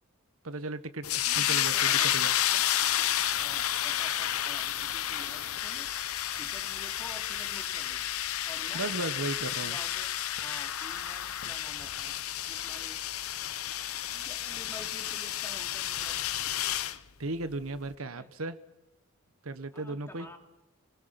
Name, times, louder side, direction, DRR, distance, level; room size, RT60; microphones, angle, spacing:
voice 1, 0.4-2.3 8.7-9.8 16.9-18.6 19.4-20.3, right 2 dB, 75° right, 11 dB, 1.3 m, -36 dB
sound 1, 1.0-17.0, left 11 dB, 80° left, 0.8 m, -31 dB
voice 2, 1.3-2.6 3.0-5.9 6.4-8.1 8.4-8.9 9.4-10.1 10.4-12.2 12.5-13.0 14.1-16.3 18.0-18.3 19.7-20.4, left 1 dB, 10° left, 3 dB, 2.8 m, -50 dB
29.5 x 21.5 x 5.9 m, 0.99 s
head